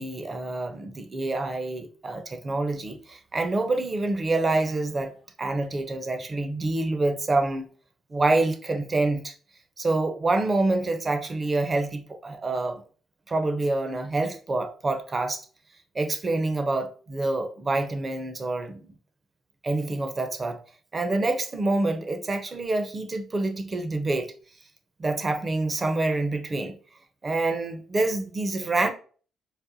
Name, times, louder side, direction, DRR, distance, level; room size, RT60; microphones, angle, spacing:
voice 1, 0.0-5.1 5.4-7.7 8.1-9.3 9.8-12.8 13.3-15.5 15.9-18.8 19.6-20.6 20.9-24.3 25.0-26.8 27.2-28.9, right 2 dB, 30° right, 0.5 m, -27 dB
4.0 x 2.2 x 2.6 m
cardioid pair, 90°, 0 cm